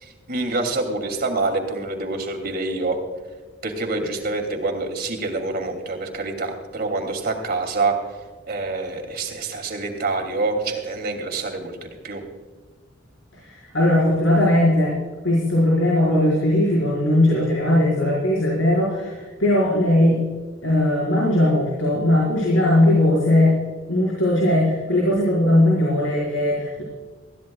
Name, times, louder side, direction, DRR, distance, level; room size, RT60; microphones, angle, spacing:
voice 1, 0.0-3.0 3.6-8.0 8.5-12.2, right 3 dB, 55° right, 3 dB, 2.8 m, -26 dB
voice 2, 13.3-14.9 15.2-20.2 20.6-23.5 23.9-26.8, left 1 dB, 90° left, -5 dB, 4.9 m, -19 dB
21.0 x 16.0 x 2.3 m, 1.4 s
head